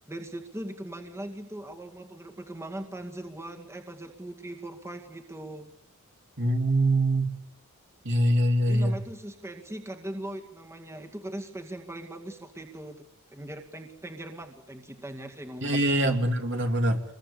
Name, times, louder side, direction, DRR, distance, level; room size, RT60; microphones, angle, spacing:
voice 1, 0.1-5.7 8.6-13.1 13.3-16.2, right 1 dB, 10° right, 3 dB, 2.1 m, -40 dB
voice 2, 6.4-7.3 8.0-9.0 15.6-17.0, right 1 dB, 55° right, 4 dB, 3.0 m, -24 dB
27.0 x 21.5 x 8.6 m, 0.75 s
head